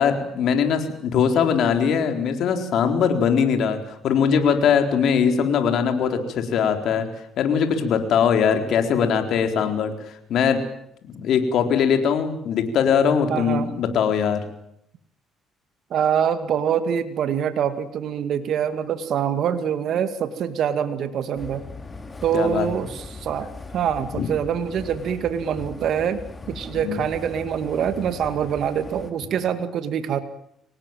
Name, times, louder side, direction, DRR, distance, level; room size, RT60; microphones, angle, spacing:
voice 1, 0.0-3.8 4.0-7.1 7.4-10.6 11.0-14.4 22.3-22.7 24.1-24.3 26.8-27.0, left 7 dB, 70° left, 6 dB, 4.1 m, -21 dB
voice 2, 13.3-13.7 15.9-21.6 22.2-26.2 26.5-30.2, right 8 dB, 65° right, 10 dB, 2.1 m, -25 dB
sound 1, 21.4-29.1, left 3 dB, 25° left, 3.1 m, -39 dB
25.0 x 19.0 x 9.1 m, 0.73 s
cardioid pair, 95°, 0 cm